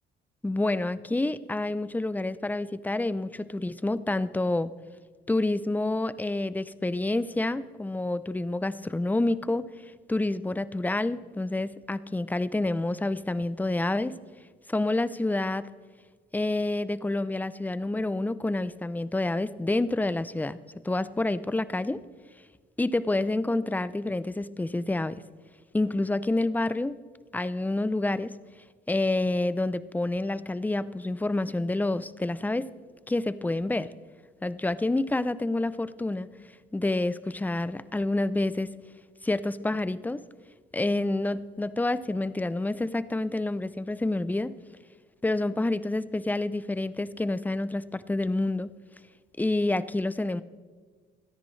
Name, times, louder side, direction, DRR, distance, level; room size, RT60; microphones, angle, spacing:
voice 1, 0.4-4.7 5.3-9.7 10.1-14.1 14.7-15.7 16.3-20.6 20.8-22.0 22.8-25.2 25.7-27.0 27.3-28.3 28.9-32.7 33.1-33.9 34.4-36.3 36.7-38.7 39.2-40.2 40.7-44.5 45.2-48.7 49.4-50.4, left 2 dB, 10° left, 16 dB, 0.5 m, -28 dB
27.5 x 10.0 x 3.2 m, 1.5 s
cardioid pair, 90°, 20 cm